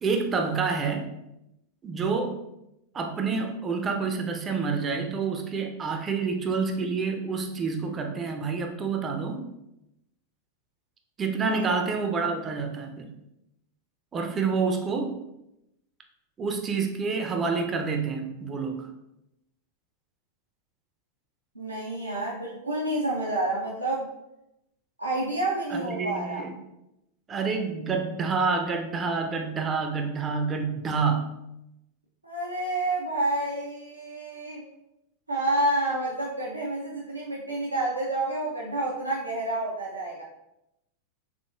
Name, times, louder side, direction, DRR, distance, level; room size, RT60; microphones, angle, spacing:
voice 1, 0.0-1.1 1.8-2.4 2.9-9.5 11.2-13.1 14.1-15.2 16.4-18.9 25.7-26.5 27.3-31.3, right 4 dB, 20° right, 4 dB, 0.5 m, -28 dB
voice 2, 21.5-24.1 25.0-26.5 32.2-34.6 35.3-40.2, right 2 dB, 85° right, -5 dB, 0.6 m, -29 dB
3.6 x 3.6 x 2.4 m, 0.88 s
figure-of-eight pair, 90°, 0 cm